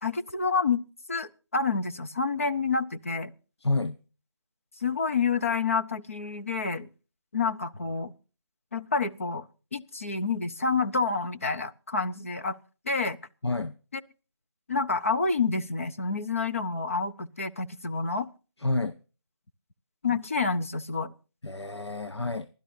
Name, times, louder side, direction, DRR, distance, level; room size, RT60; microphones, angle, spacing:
voice 1, 0.0-0.8 1.1-3.3 4.8-6.9 7.3-8.1 8.7-12.6 12.8-13.2 13.9-14.0 14.7-18.3 20.0-21.1, left 4 dB, 30° left, 0.7 m, -28 dB
voice 2, 3.6-4.0 13.4-13.7 18.6-19.0 20.1-20.2 21.4-22.5, left 2 dB, 70° left, 0.9 m, -29 dB
26.0 x 12.0 x 2.6 m
figure-of-eight pair, 165°, 15 cm